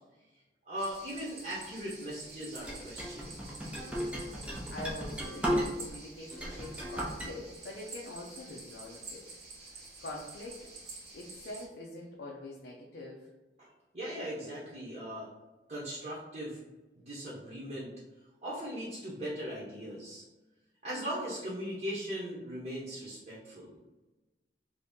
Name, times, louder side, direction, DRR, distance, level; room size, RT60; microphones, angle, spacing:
voice 1, 0.7-3.4 13.6-13.7 13.9-15.3 15.7-16.6 17.0-17.9 18.4-20.2 20.8-23.7, equal, 40° right, -8 dB, 0.8 m, -39 dB
sound 1, 0.8-11.7, right 3 dB, 70° right, 1.0 m, -49 dB
sound 2, 2.6-6.0 6.3-7.3, equal, 5° right, 0.5 m, -35 dB
voice 2, 4.7-9.2 9.7-10.7 11.1-13.3, left 1 dB, 75° left, -3 dB, 0.5 m, -44 dB
2.7 x 2.7 x 3.5 m, 1.1 s
head